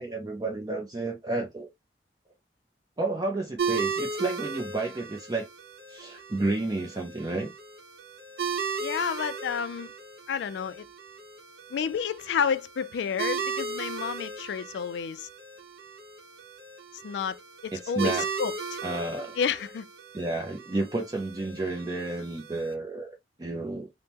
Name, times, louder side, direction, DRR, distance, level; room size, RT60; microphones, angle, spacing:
voice 1, 0.0-1.7 3.0-5.5 5.9-7.5 17.8-18.2 18.8-19.3 20.1-23.1 23.4-23.9, right 2 dB, 20° right, 0.4 m, -31 dB
sound 1, 3.6-22.7, right 5 dB, 60° right, 0.8 m, -36 dB
voice 2, 8.8-9.9 10.3-10.8 11.7-15.3 17.0-18.8 19.4-19.8, left 7 dB, 80° left, 0.3 m, -30 dB
3.4 x 2.1 x 2.8 m
head